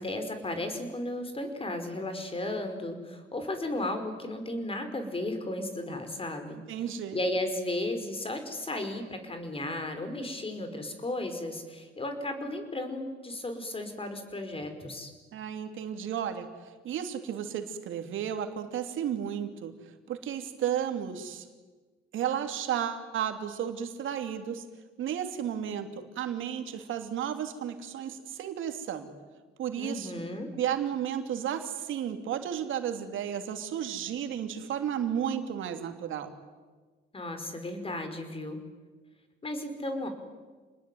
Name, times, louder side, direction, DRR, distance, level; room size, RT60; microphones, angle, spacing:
voice 1, 0.0-6.6 7.1-15.1 29.8-30.5 37.1-38.6 39.4-40.1, left 1 dB, 30° left, 7 dB, 5.4 m, -34 dB
voice 2, 6.7-7.2 15.3-16.5 16.8-19.7 20.1-21.5 22.1-24.6 25.0-25.9 26.1-29.1 29.6-30.1 30.5-36.3, right 9 dB, 80° right, 6 dB, 3.0 m, -33 dB
28.5 x 20.5 x 9.4 m, 1.4 s
cardioid pair, 90°, 20 cm